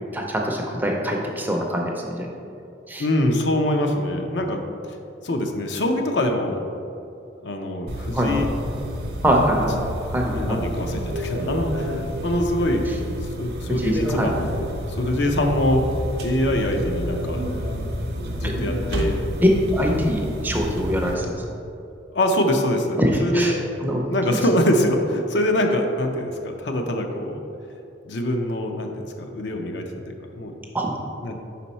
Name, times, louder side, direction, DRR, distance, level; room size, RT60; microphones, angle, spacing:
voice 1, 0.1-2.3 2.9-3.1 8.1-8.4 9.2-9.7 10.1-10.6 13.7-14.3 18.4-18.5 19.7-21.3 23.0-24.0 24.3-24.4 30.7-30.9, equal, 10° right, 0 dB, 0.5 m, -24 dB
voice 2, 3.0-4.6 5.2-6.6 7.4-8.5 10.2-12.8 13.4-14.3 14.9-15.9 16.2-17.4 18.4-19.2 22.1-23.7 24.1-27.4 28.1-30.5 31.2-31.3, left 1 dB, 70° left, 3 dB, 0.6 m, -24 dB
sound 1, 7.9-21.1, equal, 60° right, 0.6 m, -29 dB
5.4 x 4.2 x 4.2 m, 2.6 s
head